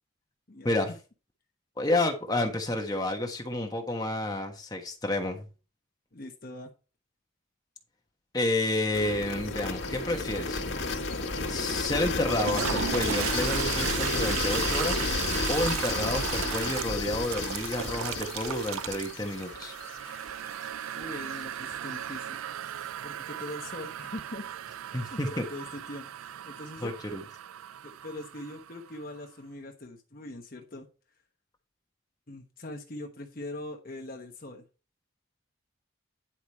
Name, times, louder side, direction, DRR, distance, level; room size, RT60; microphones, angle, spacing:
voice 1, 1.8-5.4 8.3-10.6 11.5-15.1 15.5-19.7 24.9-25.4 26.8-27.2, left 1 dB, 20° left, 1.3 m, -30 dB
voice 2, 6.1-6.7 20.9-22.4 23.0-24.4 25.1-26.9 27.8-30.9 32.3-34.7, left 1 dB, 45° left, 1.1 m, -42 dB
sound 1, 8.9-20.8, left 3 dB, 70° left, 1.6 m, -32 dB
Toilet flush, 12.2-29.0, right 11 dB, 85° right, 0.3 m, -36 dB
10.5 x 5.0 x 4.4 m
head